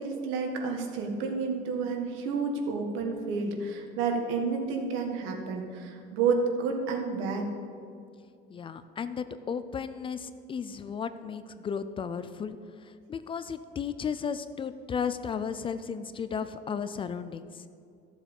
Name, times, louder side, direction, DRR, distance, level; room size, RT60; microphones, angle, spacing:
voice 1, 0.0-7.5, right 4 dB, 80° right, 3 dB, 1.8 m, -30 dB
voice 2, 8.5-17.6, left 6 dB, 25° left, 12 dB, 0.4 m, -34 dB
13.5 x 7.2 x 5.4 m, 2.4 s
cardioid pair, 140°, 20 cm